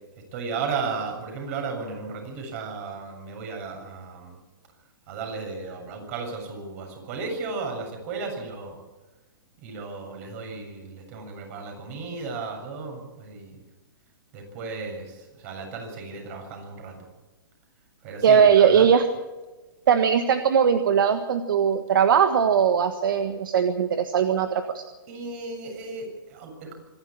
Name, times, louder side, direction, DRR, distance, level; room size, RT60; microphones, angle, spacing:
voice 1, 0.3-4.4 5.1-8.8 9.6-13.6 14.3-17.0 18.0-18.9 25.1-26.8, right 4 dB, 45° right, 3 dB, 7.4 m, -34 dB
voice 2, 18.2-19.1 19.9-24.8, right 7 dB, 70° right, 8 dB, 1.5 m, -20 dB
25.0 x 12.0 x 8.7 m, 1.2 s
hypercardioid pair, 145°, 12 cm